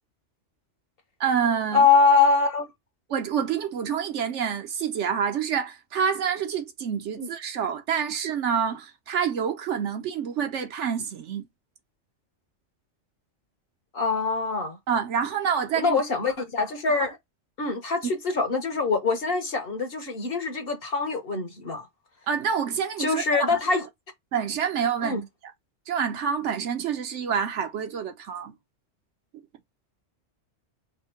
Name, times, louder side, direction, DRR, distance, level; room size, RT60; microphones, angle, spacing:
voice 1, 1.2-1.9 3.1-11.5 14.9-16.0 22.3-23.6 24.3-25.2 25.9-28.5, right 7 dB, 75° right, 1.1 m, -27 dB
voice 2, 1.7-2.6 7.2-7.3 13.9-14.8 15.7-17.2 17.6-21.9 23.0-23.9 25.0-25.2, left 4 dB, 55° left, 1.2 m, -24 dB
3.6 x 2.7 x 4.5 m
omnidirectional pair, 1.2 m